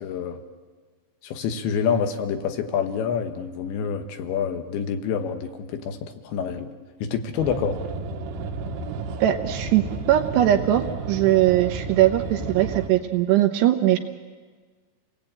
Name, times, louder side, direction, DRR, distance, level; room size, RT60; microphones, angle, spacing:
voice 1, 0.0-0.4 1.2-6.7 7.0-7.8, left 7 dB, 75° left, 7 dB, 3.4 m, -27 dB
sound 1, 7.3-12.9, right 4 dB, 90° right, 4.0 m, -32 dB
voice 2, 9.2-14.0, right 13 dB, 75° right, 6 dB, 2.7 m, -20 dB
29.5 x 19.5 x 8.8 m, 1.5 s
omnidirectional pair, 5.6 m